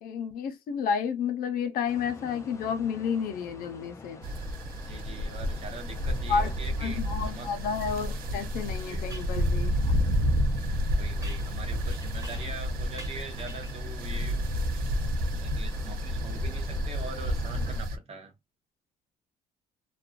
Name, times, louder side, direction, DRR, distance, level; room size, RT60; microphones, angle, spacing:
voice 1, 0.0-4.3 6.3-6.5 6.8-9.7, left 6 dB, 75° left, 0.6 m, -31 dB
sound 1, 1.9-17.8, left 3 dB, 20° left, 0.5 m, -48 dB
sound 2, 4.2-18.0, equal, 75° right, 0.5 m, -30 dB
voice 2, 4.8-7.5 8.9-9.1 10.9-18.3, right 3 dB, 40° right, 1.0 m, -43 dB
sound 3, 8.1-8.2 9.1-9.4 11.2-12.7 13.0-13.9, right 2 dB, 20° right, 0.9 m, -48 dB
2.4 x 2.2 x 2.3 m
cardioid pair, 110°, 15 cm